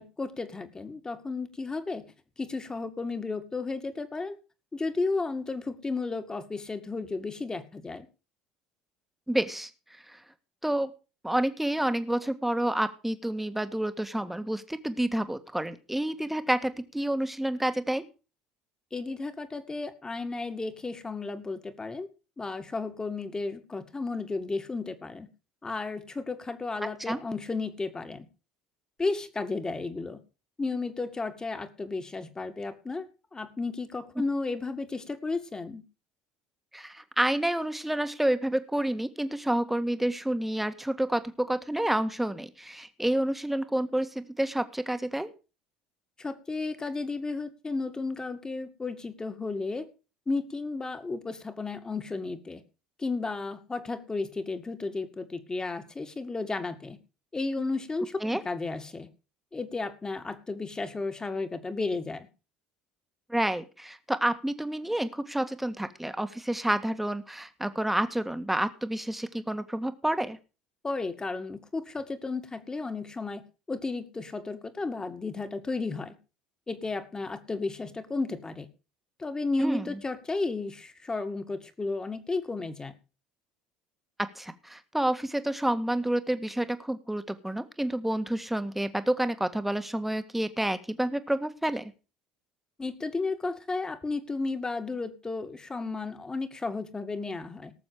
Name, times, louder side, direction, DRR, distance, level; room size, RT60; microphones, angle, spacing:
voice 1, 0.0-2.1 2.4-4.4 4.7-8.1 18.9-22.1 22.4-25.3 25.6-28.3 29.0-30.2 30.6-35.8 46.2-49.9 50.3-52.6 53.0-57.0 57.3-59.1 59.5-62.3 70.8-76.2 76.7-78.7 79.2-82.9 92.8-97.7, left 3 dB, 20° left, 8 dB, 2.2 m, -33 dB
voice 2, 9.3-9.7 10.1-10.2 10.6-10.9 11.2-18.0 27.1-27.2 36.7-45.3 58.2-58.4 63.3-70.4 79.6-79.9 84.3-91.9, right 1 dB, 5° right, 10 dB, 1.7 m, -29 dB
18.5 x 7.1 x 4.9 m, 0.33 s
hypercardioid pair, 70°, 3 cm